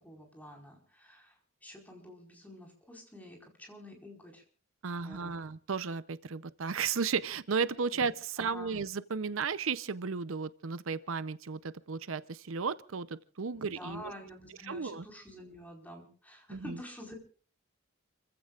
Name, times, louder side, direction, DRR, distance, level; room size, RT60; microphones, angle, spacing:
voice 1, 0.0-4.4 5.0-5.3 7.9-8.1 8.4-8.8 13.5-17.1, equal, 10° left, 4.6 m, -49 dB
voice 2, 4.8-14.1 14.7-15.0 16.5-16.8, right 5 dB, 75° right, 0.7 m, -34 dB
29.5 x 15.5 x 2.4 m
head